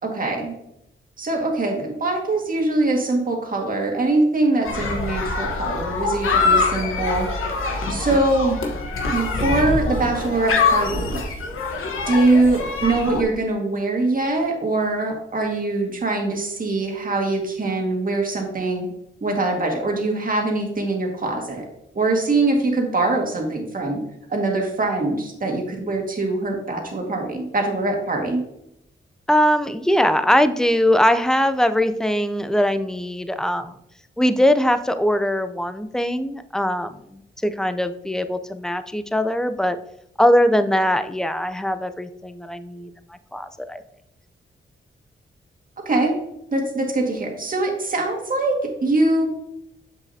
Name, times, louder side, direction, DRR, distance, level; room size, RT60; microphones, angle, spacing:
voice 1, 0.0-0.5 1.2-7.3 7.9-8.6 9.1-11.2 12.1-18.9 19.2-21.7 21.9-24.0 24.3-28.4 45.9-46.1 46.5-49.3, right 2 dB, 45° right, 1 dB, 1.9 m, -22 dB
sound 1, 4.7-13.2, left 4 dB, 90° left, 1.2 m, -24 dB
voice 2, 29.3-33.8 34.2-39.8 40.2-43.8, equal, 5° left, 10 dB, 0.5 m, -21 dB
7.4 x 6.4 x 2.8 m, 0.80 s
cardioid pair, 75°, 21 cm